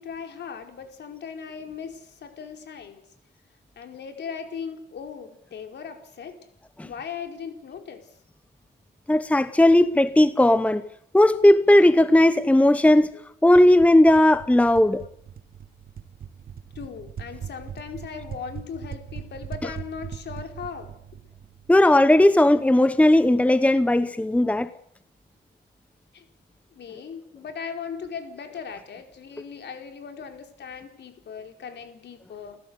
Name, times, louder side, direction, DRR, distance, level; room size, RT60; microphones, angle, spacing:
voice 1, 0.0-3.0 3.8-6.3 6.8-8.1 16.7-20.9 26.1-26.2 26.7-32.6, left 6 dB, 60° left, 4.7 m, -38 dB
voice 2, 9.1-10.8 11.1-13.1 13.4-15.0 21.7-24.7, left 1 dB, 5° left, 1.0 m, -17 dB
sound 1, 13.6-22.2, right 8 dB, 50° right, 1.5 m, -40 dB
29.5 x 15.0 x 8.3 m
cardioid pair, 90°, 20 cm